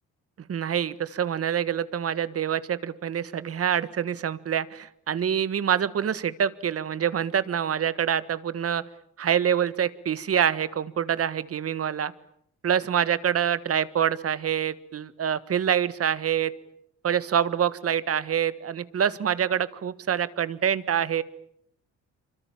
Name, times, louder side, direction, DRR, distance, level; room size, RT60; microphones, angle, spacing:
voice 1, 0.5-8.8 9.2-12.1 12.6-16.5 17.0-21.2, right 9 dB, 50° right, 16 dB, 1.5 m, -26 dB
26.5 x 24.5 x 8.8 m, 0.69 s
cardioid pair, 90°, 30 cm